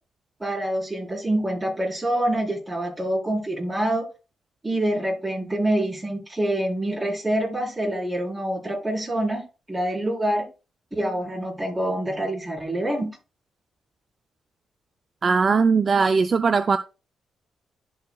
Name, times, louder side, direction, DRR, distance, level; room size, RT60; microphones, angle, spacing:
voice 1, 0.4-4.1 4.6-10.5 10.9-13.2, right 1 dB, 15° right, 4.1 m, -26 dB
voice 2, 15.2-16.8, right 5 dB, 45° right, 0.4 m, -19 dB
11.5 x 4.7 x 2.3 m
cardioid pair, 90°, 0 cm